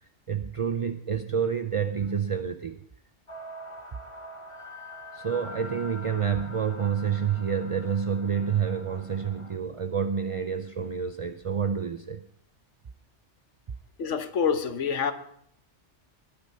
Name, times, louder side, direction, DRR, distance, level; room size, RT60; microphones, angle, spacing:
voice 1, 0.0-2.8 5.1-12.2, right 7 dB, 40° right, 9 dB, 0.4 m, -28 dB
sound 1, 3.3-9.6, left 1 dB, 25° left, 1.2 m, -44 dB
voice 2, 14.0-15.1, left 6 dB, 75° left, 8 dB, 1.3 m, -26 dB
20.0 x 6.9 x 5.4 m, 0.67 s
omnidirectional pair, 1.2 m